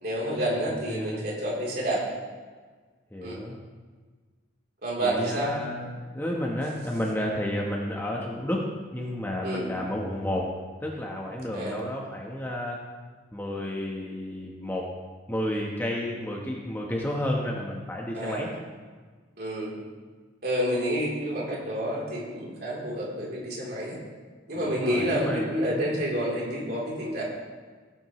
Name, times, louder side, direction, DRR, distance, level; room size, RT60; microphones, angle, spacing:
voice 1, 0.0-2.0 3.2-3.4 4.8-5.5 9.4-9.7 11.5-11.8 18.1-18.5 19.4-19.7 20.4-24.0 24.5-27.2, equal, 50° right, -4 dB, 3.5 m, -29 dB
voice 2, 0.9-1.2 3.1-3.6 5.0-10.5 10.8-12.8 13.3-14.9 15.3-18.5 24.5-25.9, left 1 dB, 10° left, -2 dB, 1.1 m, -31 dB
17.5 x 8.7 x 3.2 m, 1.5 s
head